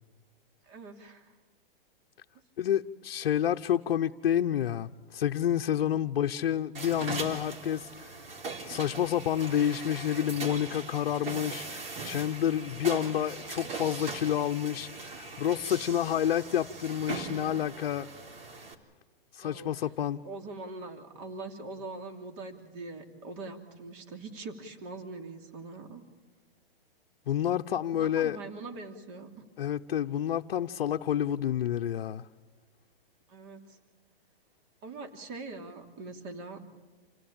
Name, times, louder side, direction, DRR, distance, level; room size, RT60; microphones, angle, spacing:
voice 1, 0.6-1.3 19.4-19.7 20.2-26.0 27.9-29.3 33.3-33.8 34.8-36.6, right 3 dB, 30° right, 4 dB, 2.9 m, -42 dB
voice 2, 2.6-8.1 8.7-18.1 19.3-20.2 27.3-28.4 29.6-32.3, left 10 dB, 65° left, 4 dB, 0.9 m, -29 dB
sound 1, 6.7-18.7, right 3 dB, 70° right, 3.9 m, -40 dB
28.5 x 16.5 x 8.8 m, 1.3 s
hypercardioid pair, 160°, 29 cm